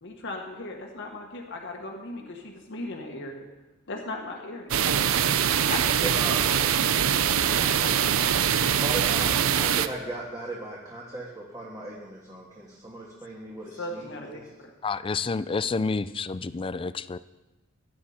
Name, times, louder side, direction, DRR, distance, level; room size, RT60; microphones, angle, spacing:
voice 1, 0.0-3.4 3.9-4.8 5.7-6.1 6.5-8.3 13.8-14.4, left 2 dB, 60° left, 1 dB, 1.5 m, -38 dB
sound 1, 4.7-9.9, right 8 dB, 80° right, 0.6 m, -23 dB
voice 2, 6.0-6.4 8.8-14.5, right 2 dB, 20° right, -4 dB, 1.8 m, -37 dB
voice 3, 14.8-17.2, left 4 dB, 25° left, 15 dB, 0.4 m, -29 dB
16.0 x 10.5 x 4.3 m, 1.1 s
head